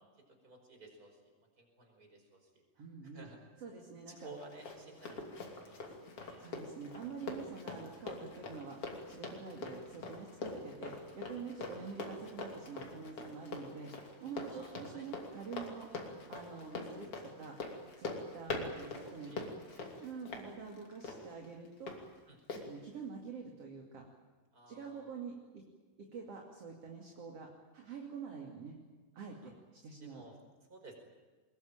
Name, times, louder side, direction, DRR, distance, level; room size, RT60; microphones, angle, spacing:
voice 1, 0.1-2.6 3.0-3.4 4.2-5.9 6.2-6.5 14.5-15.1 19.0-19.9 20.3-20.4 22.3-22.4 24.5-25.1 29.4-29.5 30.0-30.4 30.7-30.9, right 2 dB, 20° right, 3 dB, 5.4 m, -55 dB
voice 2, 2.8-3.3 3.6-4.3 6.4-19.3 20.0-21.9 22.5-24.0 24.7-25.6 26.0-28.8 29.1-30.2, right 5 dB, 40° right, 0 dB, 3.0 m, -47 dB
Run, 4.2-22.0 22.5-22.6, left 3 dB, 35° left, 3.3 m, -44 dB
23.0 x 21.0 x 8.9 m, 1.3 s
omnidirectional pair, 4.8 m